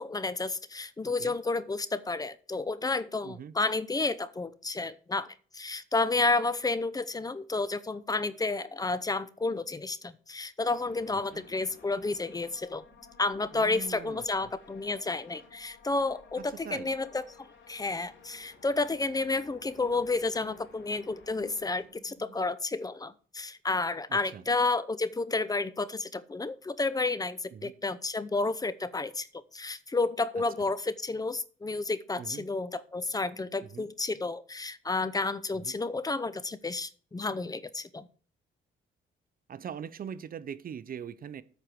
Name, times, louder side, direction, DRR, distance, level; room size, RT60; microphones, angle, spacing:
voice 1, 0.0-5.3 5.5-12.8 13.2-17.2 17.7-29.3 29.5-38.1, left 3 dB, 20° left, 0.7 m, -31 dB
voice 2, 1.0-1.3 3.2-3.5 11.3-11.4 13.5-14.3 16.4-16.9 24.1-24.4 27.5-27.7 30.4-30.7 32.2-32.5 33.6-33.9 35.5-35.7 39.5-41.4, right 8 dB, 45° right, 0.7 m, -42 dB
sound 1, 10.7-22.4, left 4 dB, 70° left, 3.8 m, -55 dB
8.5 x 4.6 x 6.8 m
cardioid pair, 90°, 20 cm